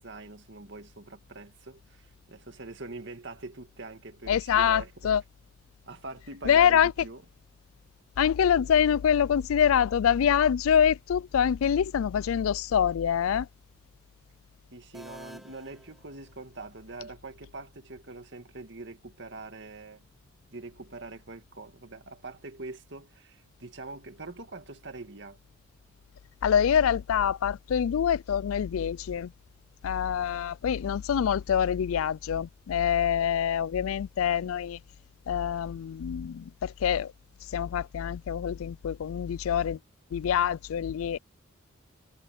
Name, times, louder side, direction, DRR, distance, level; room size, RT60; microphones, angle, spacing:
voice 1, 0.0-4.9 5.9-7.2 14.7-20.0 20.5-25.4, right 3 dB, 55° right, 2.1 m, -43 dB
voice 2, 4.3-5.2 6.4-6.9 8.2-13.5 26.4-29.3 29.8-34.8 35.3-37.1 37.5-39.8 40.1-41.2, left 8 dB, 75° left, 0.3 m, -25 dB
sound 1, 14.9-16.8, equal, ahead, 1.9 m, -51 dB
head